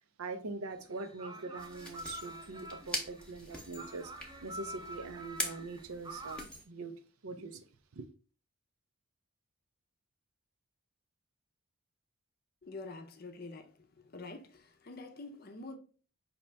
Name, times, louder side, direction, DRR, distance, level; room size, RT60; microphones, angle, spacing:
voice 1, 0.2-6.9 7.2-7.6 7.9-8.1, right 3 dB, 80° right, 0.6 m, -43 dB
sound 1, 0.7-6.4, right 1 dB, 20° right, 0.3 m, -47 dB
sound 2, 1.6-6.6, equal, 5° left, 0.7 m, -43 dB
voice 2, 12.6-13.7 14.0-15.8, left 3 dB, 45° left, 0.6 m, -46 dB
5.2 x 2.8 x 3.3 m
head